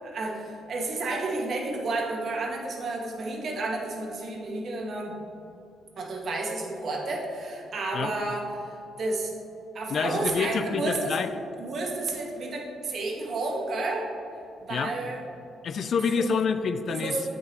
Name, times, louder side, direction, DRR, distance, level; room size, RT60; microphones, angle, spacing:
voice 1, 0.0-5.1 6.0-9.3 9.7-11.2 11.6-14.1 14.6-15.2 16.1-16.3 16.9-17.2, right 2 dB, 55° right, -1 dB, 1.3 m, -31 dB
voice 2, 9.9-11.3 14.7-14.9 15.6-17.2, left 5 dB, 55° left, 11 dB, 0.4 m, -27 dB
7.8 x 6.2 x 3.0 m, 2.8 s
cardioid pair, 90°, 0 cm